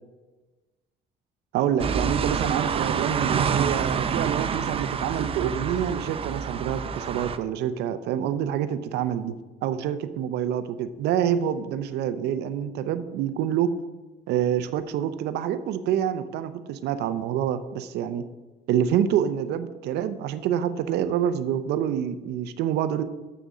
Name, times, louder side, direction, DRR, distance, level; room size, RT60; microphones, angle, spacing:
voice 1, 1.5-9.3 9.6-13.7 14.3-18.2 18.7-23.0, right 9 dB, 80° right, 11 dB, 0.7 m, -27 dB
sound 1, 1.8-7.4, right 6 dB, 35° right, 0.5 m, -27 dB
6.9 x 6.2 x 7.1 m, 1.2 s
cardioid pair, 110°, 17 cm